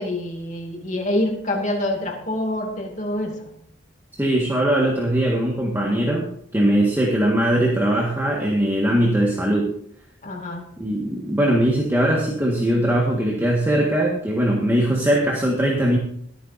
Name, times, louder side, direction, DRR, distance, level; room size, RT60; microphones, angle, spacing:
voice 1, 0.0-3.5 10.2-10.6, left 1 dB, 40° left, 2 dB, 2.6 m, -26 dB
voice 2, 4.1-6.3 6.5-9.7 10.8-16.0, right 1 dB, 10° right, -3 dB, 1.8 m, -20 dB
23.5 x 9.2 x 2.8 m, 0.67 s
head